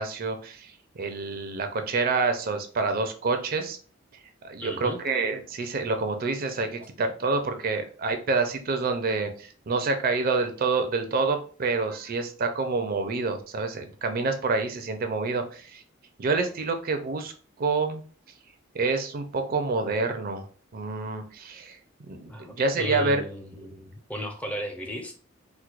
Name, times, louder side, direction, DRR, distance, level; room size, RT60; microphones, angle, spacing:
voice 1, 0.0-3.8 4.4-15.8 16.2-17.3 17.6-18.0 18.7-20.5 20.7-21.8 22.1-23.2, right 3 dB, 45° right, 6 dB, 0.5 m, -27 dB
voice 2, 4.6-5.0 22.3-25.1, left 1 dB, 5° left, 3 dB, 0.5 m, -35 dB
4.4 x 2.1 x 2.4 m, 0.39 s
head